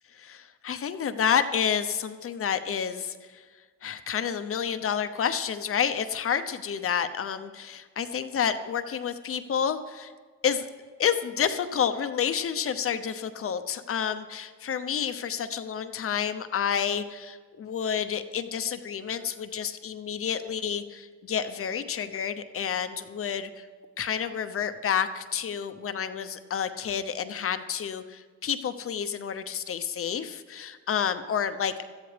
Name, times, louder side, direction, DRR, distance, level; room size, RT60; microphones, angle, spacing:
voice 1, 0.1-3.4 3.8-10.1 10.4-10.7 11.0-23.7 24.0-31.8, left 8 dB, 45° left, 10 dB, 0.8 m, -29 dB
17.5 x 13.0 x 3.4 m, 1.5 s
cardioid pair, 90°, 30 cm